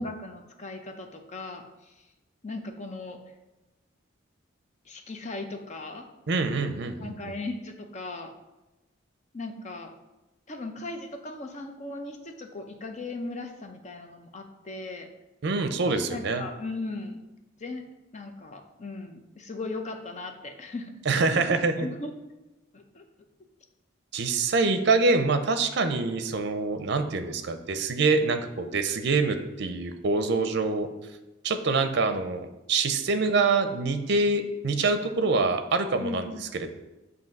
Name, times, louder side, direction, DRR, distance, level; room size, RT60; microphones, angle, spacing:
voice 1, 0.0-1.9 2.4-3.2 4.9-6.1 7.0-8.3 9.3-9.9 10.5-15.1 16.1-17.2 17.6-21.0 21.3-21.4 21.8-22.1 22.7-23.0 36.0-36.5, left 2 dB, 35° left, 5 dB, 0.6 m, -38 dB
voice 2, 6.3-7.1 15.4-16.4 21.1-21.9 24.1-30.9 31.4-36.7, right 3 dB, 60° right, 8 dB, 0.5 m, -25 dB
8.0 x 2.7 x 5.3 m, 1.0 s
head